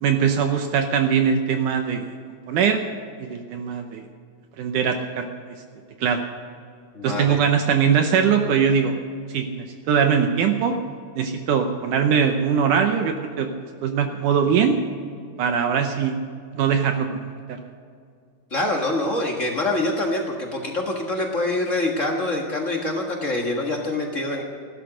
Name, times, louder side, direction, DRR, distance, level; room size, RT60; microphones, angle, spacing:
voice 1, 0.0-2.0 2.5-2.8 3.2-4.0 4.6-5.3 6.0-6.2 7.0-8.9 9.3-10.8 11.2-13.5 13.8-14.8 15.4-16.2 16.6-17.2, right 7 dB, 70° right, 5 dB, 2.2 m, -21 dB
voice 2, 6.9-7.4 18.5-24.4, left 2 dB, 50° left, 0 dB, 0.8 m, -25 dB
16.0 x 12.5 x 6.3 m, 2.2 s
omnidirectional pair, 4.1 m